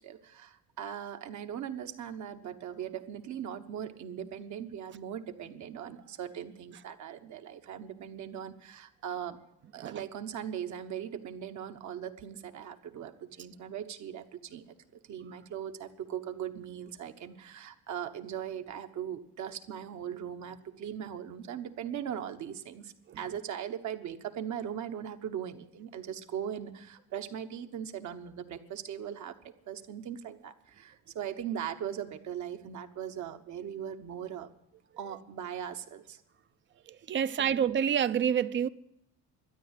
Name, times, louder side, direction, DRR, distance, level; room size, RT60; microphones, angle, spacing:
voice 1, 0.0-9.4 9.7-14.7 15.1-29.4 29.7-34.5 35.0-36.2 37.4-37.5, right 9 dB, 60° right, 1.2 m, -39 dB
voice 2, 36.9-38.7, right 8 dB, 35° right, 0.5 m, -28 dB
12.5 x 10.0 x 8.2 m
cardioid pair, 110°, 32 cm